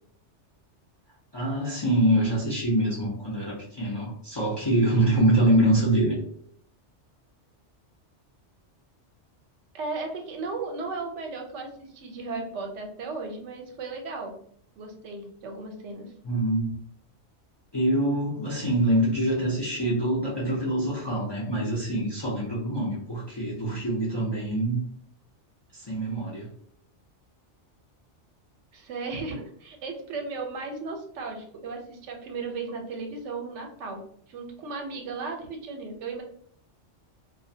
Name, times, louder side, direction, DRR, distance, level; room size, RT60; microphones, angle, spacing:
voice 1, 1.3-6.2 16.2-16.8 17.7-24.8 25.7-26.5, right 1 dB, 35° left, -5 dB, 0.4 m, -25 dB
voice 2, 9.7-14.4 14.8-16.1 28.7-34.0 34.3-36.2, right 3 dB, 80° right, 3 dB, 0.9 m, -35 dB
2.3 x 2.1 x 2.6 m, 0.62 s
omnidirectional pair, 1.2 m